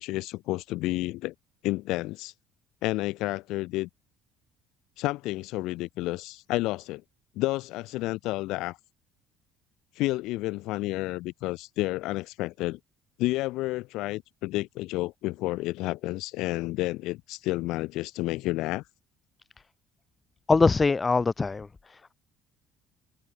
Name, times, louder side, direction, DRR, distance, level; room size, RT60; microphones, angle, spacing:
voice 1, 0.0-1.3 1.6-2.3 2.8-3.9 5.0-7.0 7.3-8.8 9.9-12.8 13.2-18.8, left 19 dB, 65° left, 1.4 m, -30 dB
voice 2, 20.5-21.7, left 4 dB, 25° left, 1.6 m, -22 dB
hypercardioid pair, 60°, 0 cm